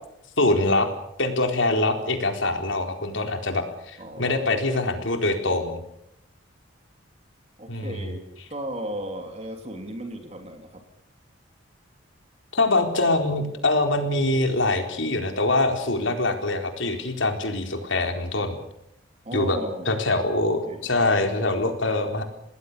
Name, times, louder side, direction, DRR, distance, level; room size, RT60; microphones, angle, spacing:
voice 1, 0.4-0.9 1.2-5.8 7.7-8.1 12.5-18.6 19.3-19.6 19.9-22.2, left 2 dB, 70° left, 5 dB, 4.2 m, -24 dB
voice 2, 4.0-4.4 7.6-8.2 8.5-10.8 19.2-20.0 20.7-20.9, right 1 dB, 30° right, 5 dB, 3.4 m, -35 dB
28.5 x 20.0 x 6.9 m, 0.78 s
head